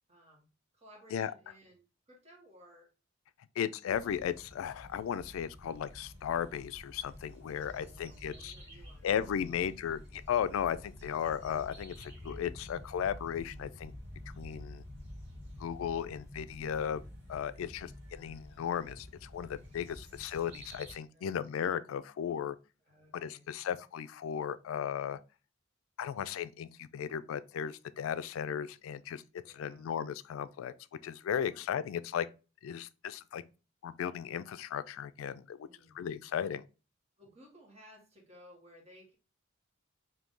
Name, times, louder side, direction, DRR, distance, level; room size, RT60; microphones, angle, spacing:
voice 1, 0.1-2.9 7.7-9.6 12.0-12.1 21.1-21.4 22.8-23.5 29.4-29.9 31.4-31.6 35.6-36.0 37.2-39.1, equal, 35° right, 1.3 m, -59 dB
voice 2, 3.6-8.5 9.0-13.9 14.4-14.8 15.6-17.0 17.3-22.6 23.1-25.2 26.0-29.2 29.5-30.7 31.0-32.3 32.6-33.4 33.8-35.7 35.9-36.6, left 8 dB, 90° left, 0.3 m, -35 dB
sound 1, 3.9-20.9, left 1 dB, 60° right, 1.5 m, -49 dB
3.8 x 2.6 x 3.6 m
head